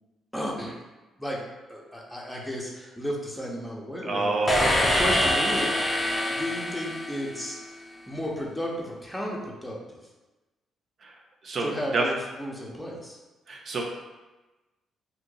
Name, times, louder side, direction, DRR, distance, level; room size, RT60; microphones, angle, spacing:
voice 1, 0.3-0.7 1.2-1.4 1.7-6.0 6.2-7.6 8.1-10.0 11.6-13.2, equal, ahead, -3 dB, 0.9 m, -33 dB
voice 2, 4.0-5.2 11.0-12.1 13.5-13.8, right 3 dB, 55° right, 0 dB, 0.7 m, -29 dB
sound 1, 4.5-7.6, left 1 dB, 20° left, 0.6 m, -25 dB
2.8 x 2.5 x 3.9 m, 1.1 s
supercardioid pair, 55°, 0 cm